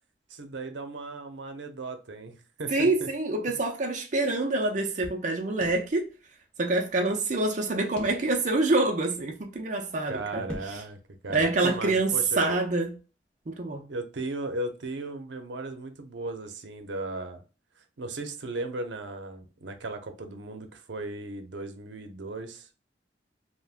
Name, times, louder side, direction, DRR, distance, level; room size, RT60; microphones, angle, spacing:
voice 1, 0.3-3.1 3.5-3.6 10.1-11.0 11.2-12.6 13.9-17.4 18.0-22.7, right 2 dB, 85° right, 0.6 m, -36 dB
voice 2, 2.7-6.1 6.6-10.4 11.3-12.9 13.5-13.8, right 2 dB, 45° right, 0.5 m, -26 dB
sound 1, 5.6-6.5 6.8-6.9 8.0-8.6 9.1-9.2 10.5-11.1 11.3-12.0, left 1 dB, 5° left, 0.6 m, -44 dB
3.4 x 2.1 x 2.4 m
head